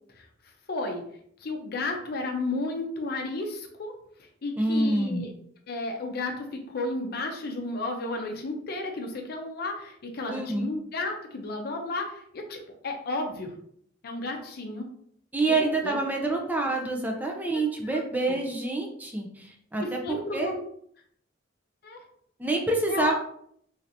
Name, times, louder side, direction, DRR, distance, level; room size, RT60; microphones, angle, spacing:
voice 1, 0.7-1.0 1.4-4.0 4.4-5.3 5.7-13.5 14.0-14.9 15.5-16.0 17.9-18.0 18.3-18.4 19.8-20.6 21.8-22.0 22.9-23.1, left 2 dB, 55° left, 3 dB, 0.5 m, -33 dB
voice 2, 4.6-5.2 10.3-10.7 15.3-20.0 20.3-20.5 22.4-23.1, right 2 dB, 10° right, 1 dB, 0.4 m, -27 dB
3.2 x 2.8 x 2.6 m, 0.66 s
head